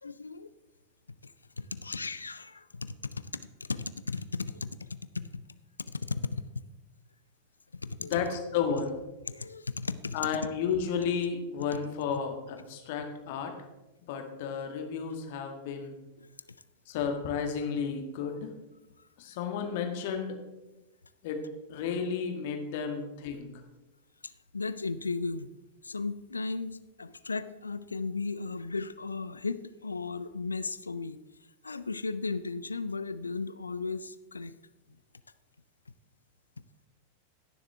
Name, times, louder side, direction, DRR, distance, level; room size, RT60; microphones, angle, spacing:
voice 1, 0.0-0.5 1.2-1.3 1.6-5.4 5.9-6.5 7.7-8.3 9.3-10.2 16.2-16.3 22.9-23.0 23.3-23.4 24.2-25.5 25.8-31.2 31.6-34.5, left 4 dB, 80° left, 14 dB, 0.4 m, -36 dB
voice 2, 8.0-8.9 10.1-13.5 14.1-16.0 16.9-18.5 19.2-20.3 21.2-21.4 21.7-23.5, left 6 dB, 50° left, 4 dB, 1.7 m, -32 dB
16.5 x 7.1 x 3.4 m, 1.0 s
figure-of-eight pair, 90°, 0 cm